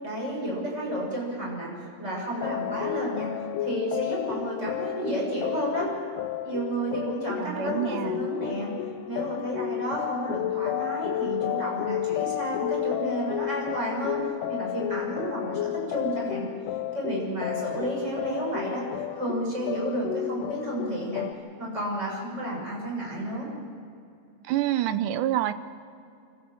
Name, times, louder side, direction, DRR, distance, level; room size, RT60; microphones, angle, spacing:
voice 1, 0.0-3.3 3.6-5.9 6.4-8.7 9.1-14.2 14.5-16.5 16.9-18.9 19.2-21.2 21.6-23.5, right 1 dB, 20° right, -3 dB, 7.1 m, -31 dB
sound 1, 2.4-21.3, left 13 dB, 80° left, 2.1 m, -32 dB
voice 2, 7.4-8.3 24.5-25.5, right 12 dB, 75° right, 12 dB, 2.0 m, -27 dB
25.5 x 14.5 x 7.7 m, 2.5 s
omnidirectional pair, 4.2 m